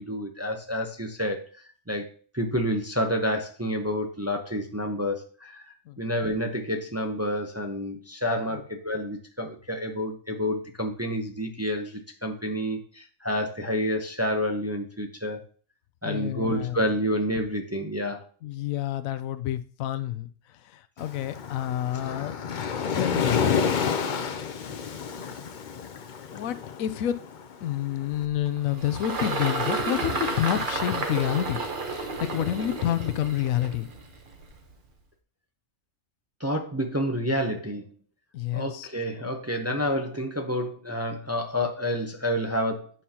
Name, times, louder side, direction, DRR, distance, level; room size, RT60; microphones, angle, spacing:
voice 1, 0.0-1.5 1.9-5.6 6.0-15.4 16.0-18.2 36.4-37.8 38.5-42.9, equal, 15° right, 0.6 m, -29 dB
voice 2, 16.0-16.8 18.4-20.3 20.6-22.4 22.9-23.5 26.3-27.1 27.6-31.6 31.9-33.9 38.3-38.9, left 12 dB, 85° left, 1.0 m, -29 dB
Waves surf, 21.0-28.1, left 6 dB, 50° left, 0.6 m, -29 dB
Engine, 28.1-34.7, right 3 dB, 40° right, 1.1 m, -31 dB
9.2 x 5.6 x 2.9 m
omnidirectional pair, 1.4 m